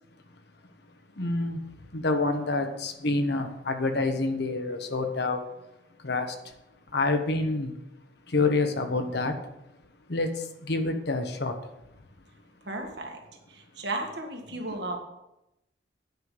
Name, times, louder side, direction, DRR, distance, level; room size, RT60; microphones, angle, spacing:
voice 1, 1.2-1.6 1.9-5.4 6.0-6.3 6.9-7.7 8.3-9.3 10.1-10.3 10.7-11.5, left 3 dB, 65° left, 1.2 m, -27 dB
voice 2, 12.6-13.2 13.5-15.0, right 2 dB, 65° right, 1.9 m, -34 dB
9.3 x 5.7 x 7.3 m
head